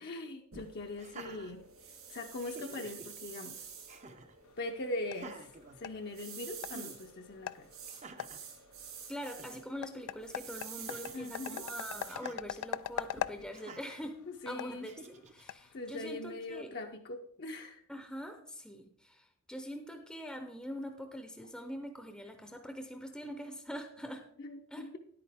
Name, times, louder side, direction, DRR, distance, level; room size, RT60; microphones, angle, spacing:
voice 1, 0.0-1.7 2.1-3.7 4.6-5.5 5.8-7.7 11.1-11.6 14.4-14.9 15.7-17.8 24.4-25.0, left 2 dB, 45° left, 2 dB, 0.6 m, -41 dB
sound 1, 0.5-13.5, right 7 dB, 75° right, 3.8 m, -49 dB
Laughter, 0.9-2.0 2.4-3.1 3.9-4.4 5.1-6.3 6.7-7.0 7.9-8.5 9.0-9.1 9.2-9.6 10.8-11.3 12.1-12.4 13.5-14.0 14.8-15.4, right 3 dB, 30° right, 0.6 m, -50 dB
sound 2, 4.4-16.3, left 10 dB, 85° left, 0.3 m, -44 dB
voice 2, 9.1-14.2 14.5-14.9 15.3-16.7 17.9-24.2 24.7-24.8, equal, 5° left, 5 dB, 0.6 m, -43 dB
10.5 x 8.6 x 3.5 m, 0.66 s
head